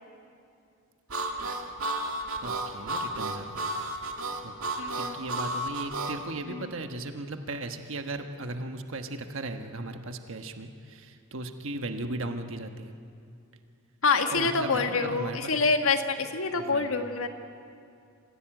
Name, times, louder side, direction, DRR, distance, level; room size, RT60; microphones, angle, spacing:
Harmonica, 1.1-6.2, right 2 dB, 85° right, 2.0 m, -32 dB
voice 1, 2.4-3.9 4.4-4.5 4.9-12.9 14.3-15.6 16.5-16.9, right 2 dB, 65° right, 6 dB, 1.4 m, -37 dB
voice 2, 4.8-5.1 6.5-6.6 14.0-17.3, left 4 dB, 80° left, 6 dB, 1.6 m, -26 dB
26.0 x 15.5 x 9.1 m, 2.5 s
head